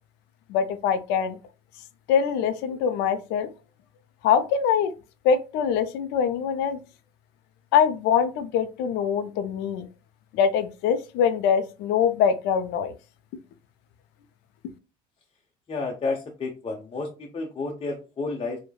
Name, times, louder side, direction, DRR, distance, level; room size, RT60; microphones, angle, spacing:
voice 1, 0.5-1.4 2.1-3.5 4.2-4.9 5.2-6.8 7.7-9.9 10.3-12.9, left 7 dB, 75° left, 10 dB, 0.4 m, -23 dB
voice 2, 15.7-18.6, left 3 dB, 30° left, 0 dB, 0.6 m, -31 dB
3.2 x 2.1 x 2.2 m, 0.31 s
supercardioid pair, 85°, 18 cm